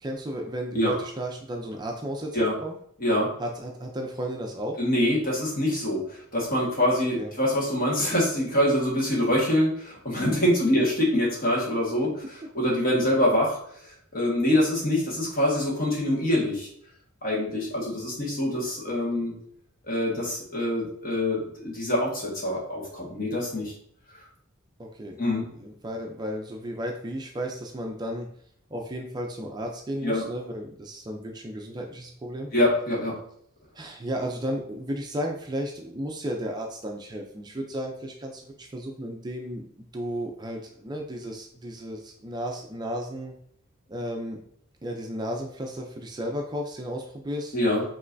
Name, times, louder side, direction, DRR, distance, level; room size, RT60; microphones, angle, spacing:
voice 1, 0.0-2.7 3.4-4.8 7.2-7.3 10.7-10.8 24.8-28.3 28.7-32.5 33.7-43.3 43.9-44.4 44.8-47.6, equal, 20° right, 1 dB, 0.4 m, -34 dB
voice 2, 3.0-3.3 4.8-12.1 12.5-16.7 17.2-19.3 19.8-23.7 24.1-24.2 25.2-25.4 30.0-30.2 32.5-33.2 47.5-47.8, left 1 dB, 45° left, -4 dB, 1.5 m, -25 dB
5.4 x 3.1 x 2.6 m, 0.65 s
head